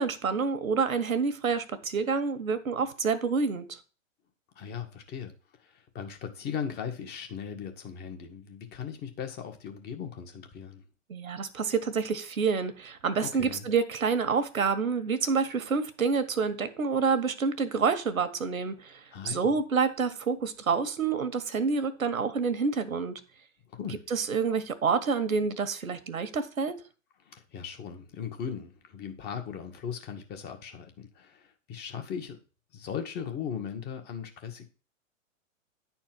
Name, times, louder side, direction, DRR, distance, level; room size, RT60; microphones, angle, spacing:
voice 1, 0.0-3.8 11.1-23.1 24.1-26.8, right 5 dB, 90° right, 1.6 m, -28 dB
voice 2, 4.5-5.3 5.9-10.8 13.2-13.7 19.1-19.5 23.7-24.0 27.3-32.4 32.7-34.7, left 7 dB, 25° left, 1.6 m, -38 dB
10.5 x 4.4 x 6.0 m
hypercardioid pair, 130°, 40 cm